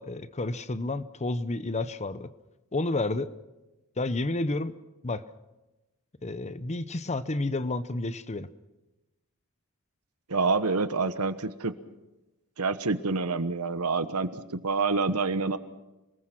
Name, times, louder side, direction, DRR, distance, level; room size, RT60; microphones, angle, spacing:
voice 1, 0.0-2.3 2.7-3.3 4.0-4.7 5.0-5.2 6.2-8.5, left 2 dB, 30° left, 14 dB, 0.8 m, -30 dB
voice 2, 10.3-11.7 12.6-15.6, right 4 dB, 80° right, 12 dB, 1.3 m, -27 dB
28.0 x 19.5 x 6.0 m, 1.0 s
head